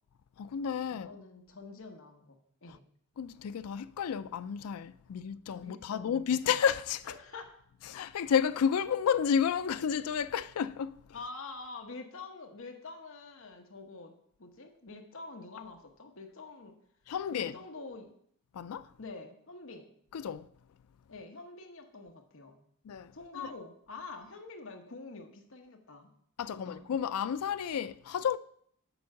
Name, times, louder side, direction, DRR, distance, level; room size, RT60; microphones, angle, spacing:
voice 1, 0.4-1.1 3.2-7.1 7.9-11.0 17.1-17.6 18.5-18.9 20.1-20.5 22.9-23.5 26.4-28.4, left 7 dB, 75° left, 0.4 m, -31 dB
voice 2, 0.9-2.8 5.5-6.2 7.0-7.5 11.1-14.1 14.4-16.8 17.3-18.1 19.0-19.9 21.1-22.6 23.1-26.1 26.5-26.8, left 3 dB, 60° left, 1.0 m, -46 dB
7.0 x 4.7 x 6.4 m
head